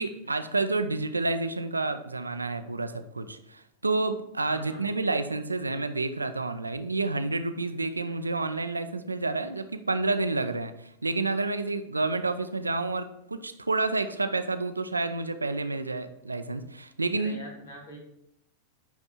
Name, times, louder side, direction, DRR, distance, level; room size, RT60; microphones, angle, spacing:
voice 1, 0.0-17.4, right 3 dB, 80° right, 9 dB, 0.5 m, -29 dB
voice 2, 4.5-4.8 11.9-12.1 17.2-18.0, left 1 dB, 65° left, 1 dB, 1.9 m, -45 dB
10.0 x 3.5 x 4.3 m, 0.80 s
figure-of-eight pair, 90°, 0 cm